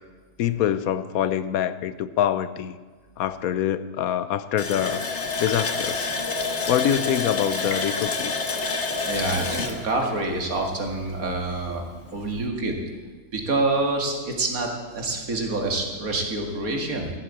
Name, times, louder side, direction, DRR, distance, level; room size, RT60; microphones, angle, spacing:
voice 1, 0.4-2.8 3.2-5.0 5.4-6.2 6.7-8.3, left 10 dB, 75° left, 13 dB, 1.1 m, -25 dB
Water tap faucet, 4.6-11.1 11.4-11.5 12.0-12.1, left 4 dB, 50° left, 1.5 m, -28 dB
voice 2, 9.0-11.8 12.1-12.7 13.3-17.1, right 2 dB, 70° right, 2 dB, 2.5 m, -27 dB
14.5 x 8.1 x 8.3 m, 1.4 s
omnidirectional pair, 1.6 m